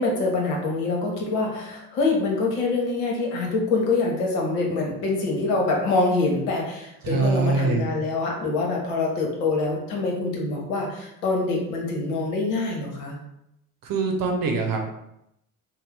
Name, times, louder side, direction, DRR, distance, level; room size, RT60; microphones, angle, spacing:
voice 1, 0.0-13.2, left 3 dB, 70° left, -1 dB, 1.0 m, -25 dB
voice 2, 7.0-7.9 13.8-14.9, right 3 dB, 45° right, 1 dB, 0.8 m, -23 dB
2.7 x 2.1 x 3.4 m, 0.81 s
hypercardioid pair, 55°, 46 cm